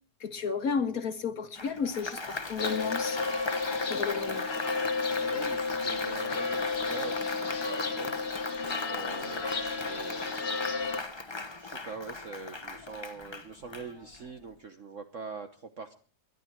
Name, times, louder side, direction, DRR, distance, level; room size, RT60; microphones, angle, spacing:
voice 1, 0.2-3.2 3.9-4.5, left 6 dB, 60° left, 1.3 m, -32 dB
Applause, 1.6-14.3, left 3 dB, 20° left, 0.7 m, -38 dB
sound 1, 2.6-11.0, left 4 dB, 40° left, 1.3 m, -32 dB
voice 2, 5.2-8.6 8.8-10.4 11.6-15.9, right 4 dB, 50° right, 1.3 m, -43 dB
21.5 x 11.0 x 4.5 m
omnidirectional pair, 1.9 m